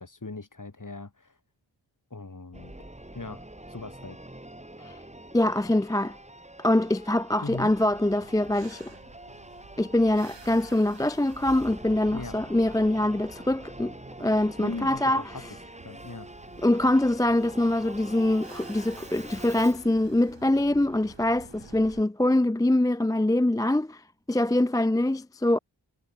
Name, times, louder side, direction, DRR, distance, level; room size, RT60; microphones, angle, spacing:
voice 1, 0.0-1.4 2.1-2.7 3.1-3.4 3.7-4.2 7.4-7.7 12.1-12.4 14.6-15.4 15.8-16.3, left 3 dB, 40° left, 3.6 m, -38 dB
Singing / Musical instrument, 2.5-19.9, right 1 dB, 15° right, 3.5 m, -45 dB
voice 2, 5.3-6.2 6.6-8.9 9.8-15.2 16.6-24.0 24.3-25.6, left 1 dB, 10° left, 0.5 m, -24 dB
sound 1, 7.5-22.0, right 4 dB, 65° right, 5.9 m, -52 dB
cardioid pair, 50°, 46 cm